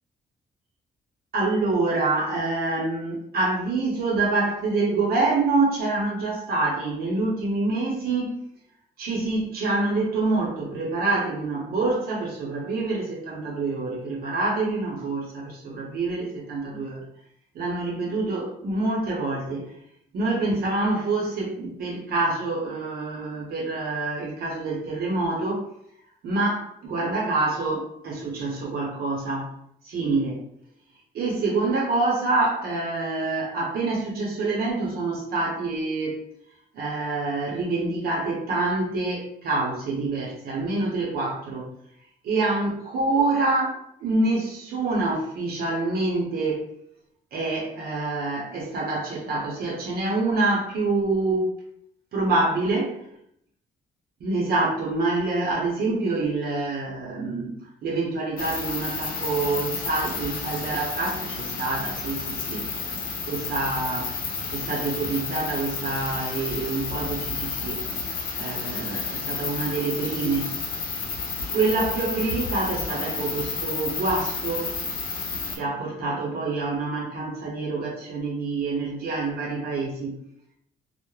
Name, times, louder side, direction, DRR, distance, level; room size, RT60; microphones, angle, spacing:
voice 1, 1.3-8.4 9.0-17.0 17.5-19.8 20.1-25.7 26.2-29.5 29.8-30.4 31.1-36.2 36.7-41.7 42.2-46.7 47.3-51.5 52.1-53.0 54.2-57.5 57.8-62.7 63.3-64.1 64.5-67.8 68.4-70.6 71.5-74.7 75.4-80.2, right 3 dB, 70° right, -3 dB, 0.6 m, -26 dB
sound 1, 58.4-75.6, left 4 dB, 65° left, 0.6 m, -31 dB
2.2 x 2.0 x 3.0 m, 0.72 s
cardioid pair, 105°, 16 cm